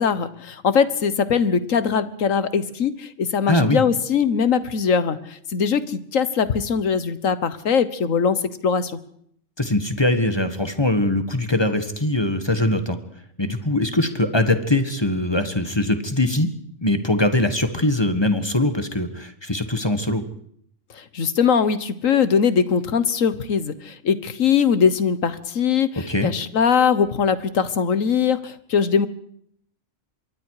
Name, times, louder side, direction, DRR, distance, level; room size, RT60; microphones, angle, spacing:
voice 1, 0.0-9.0 20.9-29.1, left 6 dB, 80° left, 14 dB, 1.6 m, -21 dB
voice 2, 3.5-3.8 9.6-13.0 13.4-16.5 16.8-20.2 26.1-26.3, left 1 dB, 20° left, 9 dB, 1.7 m, -22 dB
26.0 x 23.0 x 4.9 m, 0.67 s
omnidirectional pair, 1.3 m